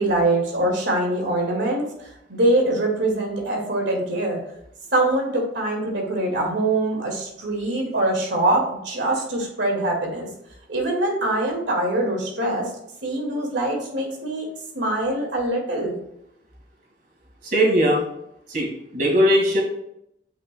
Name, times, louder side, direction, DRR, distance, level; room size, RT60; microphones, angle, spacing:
voice 1, 0.0-4.4 4.9-10.3 10.7-12.7 13.0-14.5 14.7-15.9, right 1 dB, 85° right, 0 dB, 2.0 m, -23 dB
voice 2, 17.5-18.0 18.5-18.7 18.9-19.6, equal, 55° right, -1 dB, 2.0 m, -18 dB
8.5 x 5.1 x 2.2 m, 0.77 s
head